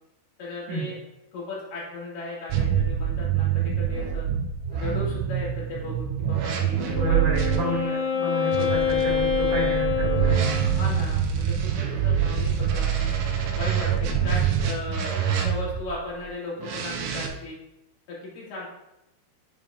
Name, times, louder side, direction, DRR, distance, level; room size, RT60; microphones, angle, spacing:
voice 1, 0.4-1.0 1.3-4.3 4.7-7.1 7.6-7.9 10.5-13.1 13.5-17.6 18.1-18.7, left 2 dB, 55° left, -6 dB, 3.1 m, -36 dB
sound 1, 2.5-7.6 8.5-15.9 16.6-17.3, right 8 dB, 80° right, 2.7 m, -25 dB
Wind instrument woodwind instrument, 6.7-11.0, left 8 dB, 70° left, 2.4 m, -27 dB
voice 2, 6.8-10.6, right 2 dB, 65° right, -5 dB, 1.1 m, -30 dB
8.7 x 5.2 x 2.3 m, 0.88 s
omnidirectional pair, 5.5 m